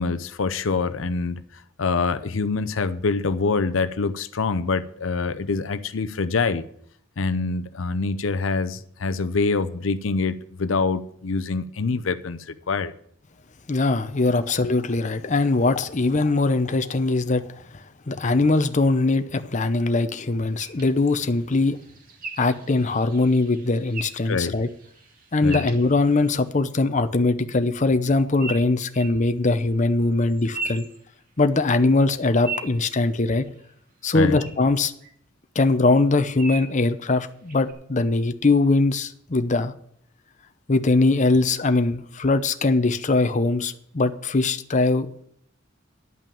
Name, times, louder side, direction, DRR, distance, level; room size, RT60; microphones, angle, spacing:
voice 1, 0.0-6.7 7.2-12.9 14.4-14.5 24.2-24.5 25.4-25.7 34.1-34.4, left 4 dB, 85° left, 13 dB, 0.7 m, -25 dB
voice 2, 13.7-21.8 22.4-24.7 25.3-30.9 31.4-33.4 34.0-34.9 35.5-39.7 40.7-45.2, left 3 dB, 40° left, 9 dB, 0.8 m, -21 dB
sound 1, 20.6-26.5 28.4-29.2 30.2-31.6 32.0-33.7 34.3-34.5 35.0-35.1 36.4-36.8 37.5-37.7, right 4 dB, 45° right, 2.2 m, -38 dB
11.0 x 5.8 x 8.7 m, 0.65 s
head